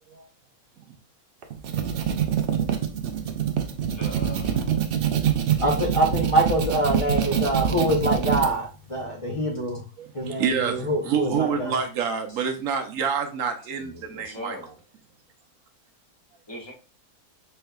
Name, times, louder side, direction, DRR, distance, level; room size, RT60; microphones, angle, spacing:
sound 1, 1.4-8.5, right 8 dB, 85° right, 0.5 m, -25 dB
voice 1, 4.0-4.7 12.3-12.5 13.7-14.7 16.5-16.7, equal, 20° left, 1.1 m, -40 dB
voice 2, 5.6-9.8 10.1-11.8, right 1 dB, 55° left, 0.3 m, -24 dB
voice 3, 10.0-14.6, right 6 dB, 70° right, 1.0 m, -27 dB
4.4 x 3.3 x 2.2 m
omnidirectional pair, 1.6 m